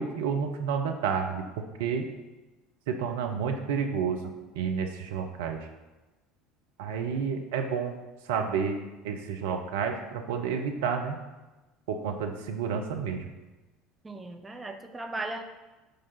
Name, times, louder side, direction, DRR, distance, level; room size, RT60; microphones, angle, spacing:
voice 1, 0.0-1.4 1.8-2.1 2.9-4.2 4.5-5.7 6.8-8.0 8.3-8.8 9.0-11.2 11.9-13.2, right 6 dB, 65° right, 4 dB, 0.7 m, -30 dB
voice 2, 14.0-15.4, right 2 dB, 20° right, 5 dB, 0.6 m, -37 dB
6.7 x 4.9 x 5.6 m, 1.1 s
figure-of-eight pair, 65°, 0 cm